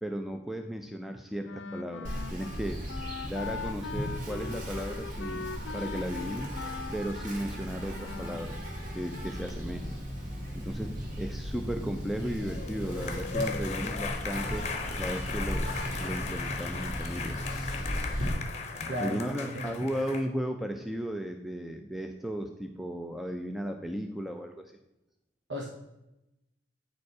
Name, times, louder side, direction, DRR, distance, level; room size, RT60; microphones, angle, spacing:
voice 1, 0.0-2.8 3.2-6.6 6.9-10.3 10.5-14.7 15.0-17.9 19.0-24.8, equal, ahead, 4 dB, 0.4 m, -35 dB
Wind instrument woodwind instrument, 1.4-8.5, left 5 dB, 80° left, 0.5 m, -41 dB
Insect, 2.0-18.3, equal, 40° right, 2.1 m, -36 dB
sound 1, 12.4-20.3, left 4 dB, 35° left, 0.8 m, -37 dB
voice 2, 18.9-19.8 25.5-25.7, equal, 65° right, -1 dB, 1.1 m, -35 dB
9.2 x 5.2 x 4.7 m, 0.91 s
head